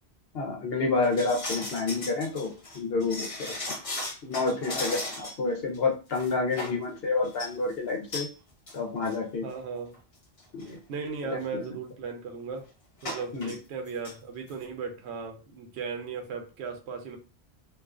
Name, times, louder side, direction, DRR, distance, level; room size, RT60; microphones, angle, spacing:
voice 1, 0.3-3.5 4.2-8.3 8.7-9.4 10.6-10.8 11.3-11.6 13.3-13.5, left 3 dB, 70° left, 1 dB, 0.8 m, -29 dB
sound 1, 1.0-5.5 5.7-5.8 6.1-6.8 7.2-7.5 8.1-8.3 8.7-8.8 9.0-9.2 9.9-10.0 10.4-10.6 13.0-13.6 13.9-14.1 14.5-14.6, left 2 dB, 40° left, 0.6 m, -36 dB
voice 2, 4.5-4.9 9.4-10.0 10.6-12.7 13.0-17.2, right 5 dB, 80° right, 4 dB, 0.9 m, -37 dB
2.4 x 2.3 x 2.3 m, 0.33 s
omnidirectional pair, 1.1 m